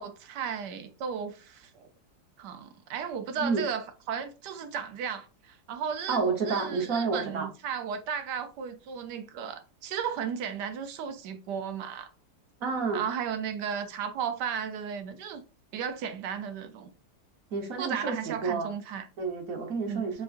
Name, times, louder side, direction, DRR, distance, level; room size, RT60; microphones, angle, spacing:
voice 1, 0.0-1.9 2.4-12.1 12.9-15.4 15.7-16.9 17.8-19.0 19.9-20.2, right 7 dB, 70° right, 1.2 m, -35 dB
voice 2, 6.1-7.5 12.6-13.0 17.5-18.7 19.2-20.2, right 4 dB, 55° right, 1.4 m, -29 dB
4.6 x 3.9 x 2.5 m
omnidirectional pair, 2.0 m